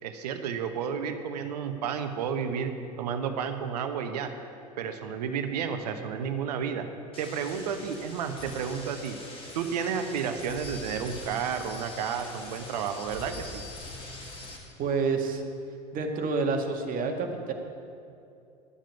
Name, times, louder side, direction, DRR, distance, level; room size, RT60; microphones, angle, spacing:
voice 1, 0.0-4.3 4.8-6.9 7.2-9.2 9.5-13.6, right 7 dB, 75° right, 7 dB, 1.1 m, -31 dB
sound 1, 7.1-14.6, left 2 dB, 25° left, 2.9 m, -43 dB
voice 2, 14.8-15.4 15.9-17.5, right 4 dB, 40° right, 3 dB, 1.8 m, -28 dB
11.5 x 7.5 x 9.1 m, 2.6 s
hypercardioid pair, 80°, 21 cm